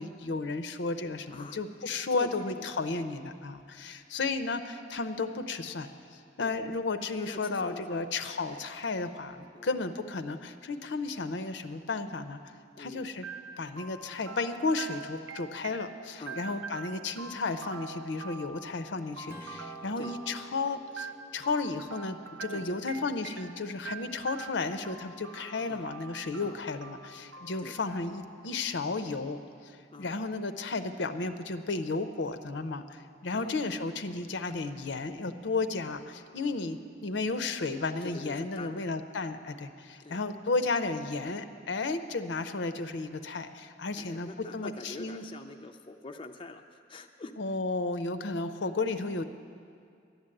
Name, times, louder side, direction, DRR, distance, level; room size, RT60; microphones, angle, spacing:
voice 1, 0.0-5.9 6.4-12.4 12.8-13.2 13.6-29.4 30.0-45.2 47.4-49.2, left 3 dB, 75° left, 8 dB, 0.6 m, -33 dB
voice 2, 2.1-2.8 6.4-6.5 7.2-8.1 9.5-9.7 12.8-13.1 16.2-16.6 20.0-20.1 22.5-23.1 25.7-25.9 26.4-26.6 27.6-27.8 29.9-30.2 33.3-33.6 38.0-38.9 40.0-40.2 44.0-47.3, left 2 dB, 30° left, 5 dB, 0.5 m, -45 dB
sound 1, 13.2-29.0, right 5 dB, 90° right, 0.6 m, -45 dB
Strum, 19.3-24.2, equal, 15° right, 0.7 m, -53 dB
11.5 x 9.7 x 7.7 m, 2.3 s
head